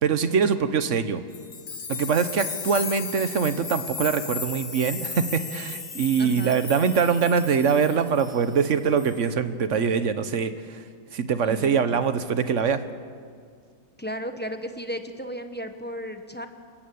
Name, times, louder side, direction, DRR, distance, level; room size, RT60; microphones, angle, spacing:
voice 1, 0.0-1.2 1.9-10.8 11.1-12.8, right 6 dB, 45° right, 11 dB, 1.2 m, -23 dB
sound 1, 1.3-8.7 9.0-9.3, left 5 dB, 45° left, 1.9 m, -36 dB
voice 2, 6.2-6.6 11.4-12.0 14.0-16.5, equal, 5° left, 6 dB, 1.0 m, -34 dB
28.5 x 15.0 x 8.6 m, 2.1 s
omnidirectional pair, 2.1 m